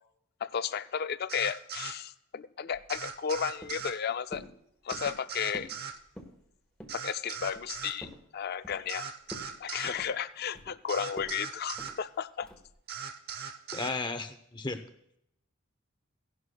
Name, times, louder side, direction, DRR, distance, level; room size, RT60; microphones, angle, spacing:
voice 1, 0.4-4.5 4.8-5.7 6.9-9.1 9.6-12.5, left 7 dB, 45° left, 13 dB, 0.4 m, -33 dB
sound 1, 1.3-2.0 2.9-4.0 4.9-6.0 6.9-8.0 8.9-10.0 10.9-12.0 12.9-14.0, right 7 dB, 50° right, 0.7 m, -39 dB
sound 2, 2.7-3.3 3.6-4.0 4.3-4.5 4.9-5.2 5.5-5.8 6.1-6.4 6.8-7.0 7.4-8.2 8.6-9.0 9.3-9.5 9.9-10.8 11.2-11.4 11.8-12.0 12.4-12.7, equal, 5° left, 1.2 m, -47 dB
voice 2, 13.7-14.8, left 3 dB, 20° left, 9 dB, 0.7 m, -34 dB
17.5 x 11.0 x 2.3 m, 0.75 s
head